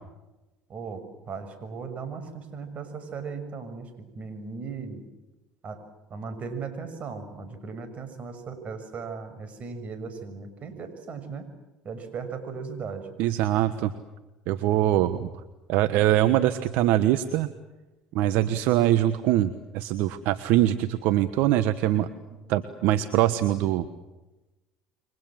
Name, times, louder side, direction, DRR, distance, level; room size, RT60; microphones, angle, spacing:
voice 1, 0.7-1.0 1.3-5.1 5.6-5.8 6.1-11.5 11.8-13.1, right 5 dB, 45° right, 8 dB, 6.6 m, -37 dB
voice 2, 13.2-13.9 14.5-15.3 15.7-17.5 18.1-22.1 22.5-23.9, right 13 dB, 70° right, 11 dB, 1.3 m, -23 dB
29.0 x 24.0 x 7.7 m, 1.1 s
hypercardioid pair, 80°, 3 cm